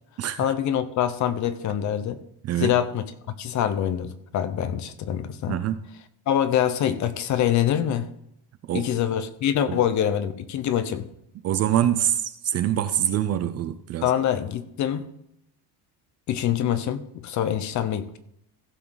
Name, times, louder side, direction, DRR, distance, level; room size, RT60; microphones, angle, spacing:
voice 1, 0.4-2.2 2.6-3.0 3.4-5.6 6.3-8.1 8.7-11.1 14.0-15.1 16.3-18.2, left 10 dB, 40° left, 0.9 m, -25 dB
voice 2, 2.4-2.8 5.5-5.9 8.7-8.9 9.7-9.8 11.4-14.1, right 11 dB, 35° right, 0.5 m, -25 dB
16.0 x 6.9 x 4.0 m
cardioid pair, 170°, 43 cm